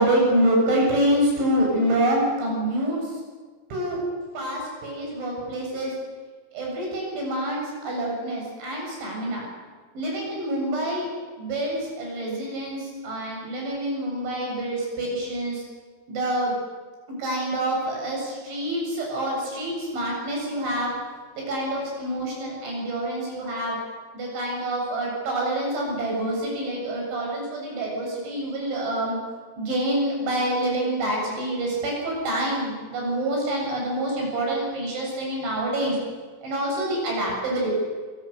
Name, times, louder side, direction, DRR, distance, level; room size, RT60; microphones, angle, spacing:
voice 1, 0.0-3.0 3.7-4.0 4.3-5.9 6.5-9.4 9.9-11.1 11.4-15.6 16.1-16.6 17.2-20.9 21.4-23.8 24.1-29.2 29.6-36.0 36.4-37.8, right 1 dB, 65° right, -1 dB, 9.8 m, -26 dB
28.5 x 16.0 x 8.2 m, 1.5 s
omnidirectional pair, 5.9 m